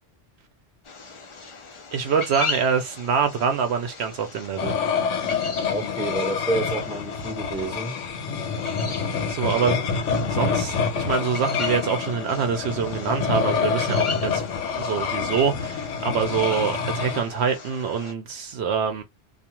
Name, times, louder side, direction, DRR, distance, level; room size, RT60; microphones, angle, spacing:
sound 1, 0.8-18.1, left 4 dB, 45° left, 0.4 m, -38 dB
voice 1, 1.9-4.7 9.3-9.8 10.3-14.4 14.7-19.0, right 6 dB, 70° right, 0.8 m, -25 dB
sound 2, 4.6-17.2, left 6 dB, 85° left, 1.0 m, -27 dB
voice 2, 5.7-8.0 9.5-9.8, right 2 dB, 5° right, 0.8 m, -29 dB
2.4 x 2.3 x 2.9 m
omnidirectional pair, 1.2 m